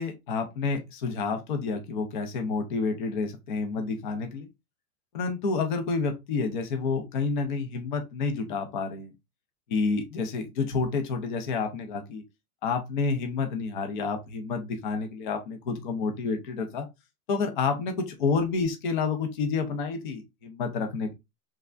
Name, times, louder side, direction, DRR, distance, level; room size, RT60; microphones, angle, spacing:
voice 1, 0.0-4.5 5.1-9.1 9.7-12.2 12.6-16.9 17.3-21.1, left 4 dB, 35° left, 0.4 m, -29 dB
3.3 x 3.2 x 2.3 m
supercardioid pair, 175°, 46 cm